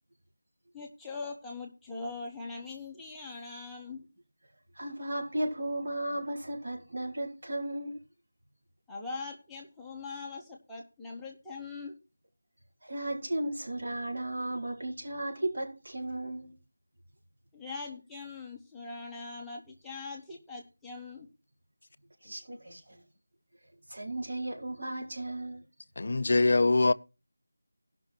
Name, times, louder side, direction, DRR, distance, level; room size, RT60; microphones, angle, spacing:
voice 1, 0.7-4.0 8.9-12.0 17.5-21.3 22.3-22.4 22.7-22.8, left 3 dB, ahead, 0.8 m, -42 dB
voice 2, 4.7-8.0 12.8-16.5 22.2-23.0 23.9-25.6, right 1 dB, 45° right, 4.5 m, -35 dB
voice 3, 26.0-26.9, left 2 dB, 40° left, 0.5 m, -23 dB
17.0 x 6.0 x 4.5 m
figure-of-eight pair, 175°, 0 cm